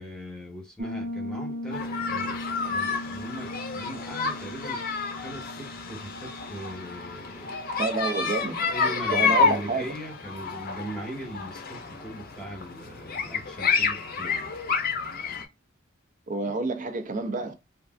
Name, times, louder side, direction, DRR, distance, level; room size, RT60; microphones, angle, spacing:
voice 1, 0.0-4.8 5.1-7.6 8.2-8.3 8.7-14.5, right 1 dB, 5° left, 1.0 m, -40 dB
Piano, 0.8-9.3, left 1 dB, 75° right, 0.7 m, -39 dB
sound 1, 1.7-15.4, left 5 dB, 45° left, 0.6 m, -29 dB
voice 2, 7.8-8.7 9.1-9.8 16.3-17.5, right 3 dB, 40° right, 0.5 m, -29 dB
3.3 x 2.4 x 2.4 m
head